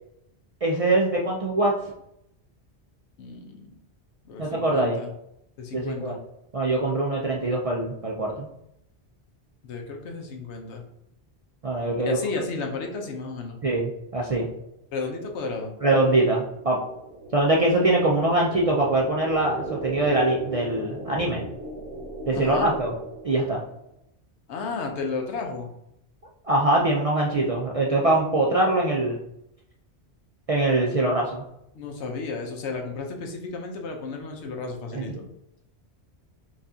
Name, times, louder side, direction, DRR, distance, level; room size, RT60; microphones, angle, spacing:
voice 1, 0.6-1.7 4.4-5.0 5.7-6.2 6.5-8.5 11.6-12.2 13.6-14.5 15.8-16.8 17.3-21.4 22.3-22.9 23.2-23.6 26.4-29.2 30.5-31.4 34.9-35.0, right 2 dB, 50° right, -2 dB, 0.4 m, -23 dB
voice 2, 3.2-3.7 4.2-5.1 5.6-6.2 9.6-10.8 12.0-13.6 14.9-15.7 22.3-22.7 24.5-25.7 31.7-35.3, left 4 dB, 80° left, 3 dB, 1.0 m, -33 dB
sound 1, 15.1-23.9, right 1 dB, 70° right, 1.1 m, -38 dB
5.1 x 2.4 x 2.7 m, 0.78 s
omnidirectional pair, 1.1 m